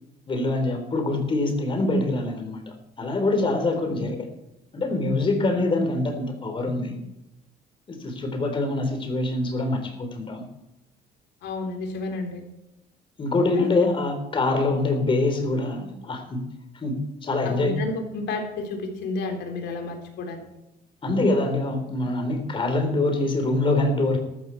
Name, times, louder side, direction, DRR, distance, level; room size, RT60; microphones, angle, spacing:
voice 1, 0.3-4.2 4.7-7.0 7.9-10.4 13.2-16.4 16.7-17.7 21.0-24.2, left 2 dB, 25° left, 5 dB, 3.5 m, -24 dB
voice 2, 11.4-12.4 13.5-13.9 17.4-20.5, left 3 dB, 70° left, 4 dB, 3.8 m, -31 dB
13.5 x 13.0 x 4.5 m, 0.90 s
cardioid pair, 145°, 19 cm